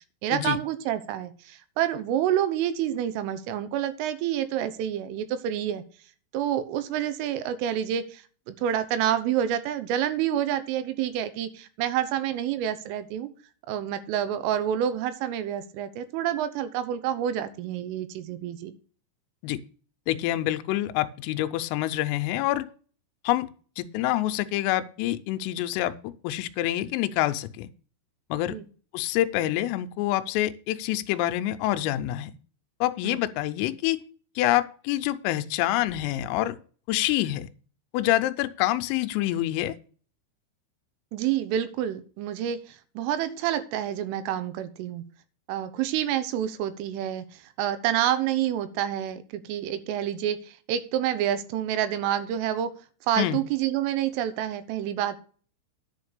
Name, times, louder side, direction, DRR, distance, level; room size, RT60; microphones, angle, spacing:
voice 1, 0.2-5.8 6.3-13.3 13.7-18.7 28.5-28.6 33.0-33.2 41.1-45.0 45.5-52.7 53.1-55.2, right 10 dB, 80° right, 12 dB, 3.4 m, -28 dB
voice 2, 20.1-22.7 23.2-23.5 23.8-25.9 26.2-27.7 28.3-28.6 28.9-32.3 32.8-34.0 34.4-36.6 36.9-37.5 37.9-39.7 53.2-53.4, left 14 dB, 85° left, 10 dB, 3.3 m, -26 dB
10.5 x 5.2 x 6.6 m, 0.41 s
omnidirectional pair, 5.8 m